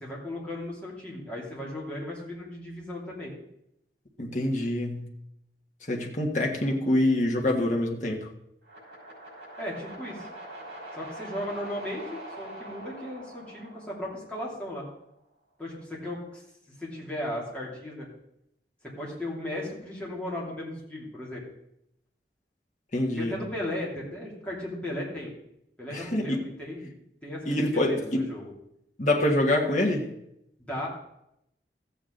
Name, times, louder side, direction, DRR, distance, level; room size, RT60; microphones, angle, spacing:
voice 1, 0.0-3.3 9.6-10.3 10.9-14.9 15.6-16.4 16.8-18.1 18.8-21.4 23.2-25.3 25.8-26.9 27.2-28.5 30.6-30.9, left 1 dB, 5° left, -5 dB, 2.9 m, -36 dB
voice 2, 4.2-5.0 5.8-8.3 22.9-23.3 25.9-26.4 27.4-28.2 29.0-30.1, left 1 dB, 45° left, 0 dB, 1.5 m, -25 dB
sound 1, 8.6-14.8, right 1 dB, 70° right, 5.3 m, -44 dB
14.0 x 8.3 x 3.9 m, 0.81 s
head